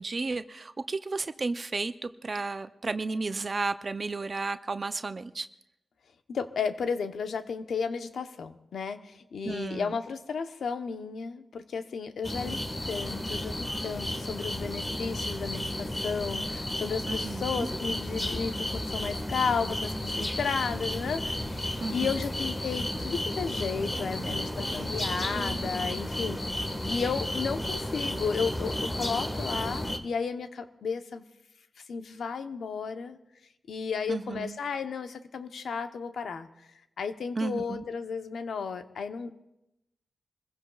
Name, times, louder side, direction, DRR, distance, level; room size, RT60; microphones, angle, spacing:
voice 1, 0.0-5.5 9.4-10.0 17.1-17.7 21.8-22.2 34.1-34.6 37.4-37.9, right 3 dB, 40° right, 11 dB, 0.5 m, -33 dB
voice 2, 6.3-12.6 12.9-31.2 31.9-33.2 33.7-36.5 37.0-39.3, left 5 dB, 75° left, 8 dB, 0.9 m, -33 dB
sound 1, 12.2-30.0, left 1 dB, 25° left, 1.5 m, -33 dB
26.5 x 15.5 x 2.4 m, 0.89 s
cardioid pair, 70°, 0 cm